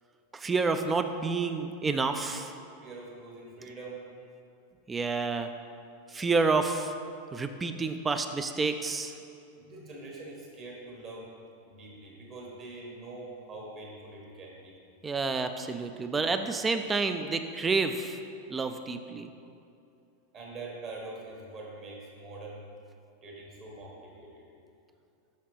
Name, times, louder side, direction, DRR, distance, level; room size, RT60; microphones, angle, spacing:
voice 1, 0.3-2.5 4.9-5.5 6.1-6.9 7.3-9.1 15.0-18.2 18.5-19.3, right 4 dB, 15° right, 8 dB, 0.3 m, -29 dB
voice 2, 2.8-4.1 9.6-11.3 11.6-14.8 20.3-22.6 23.2-24.5, right 2 dB, 30° right, -2 dB, 1.3 m, -44 dB
5.8 x 5.7 x 3.1 m, 2.6 s
figure-of-eight pair, 90°, 0 cm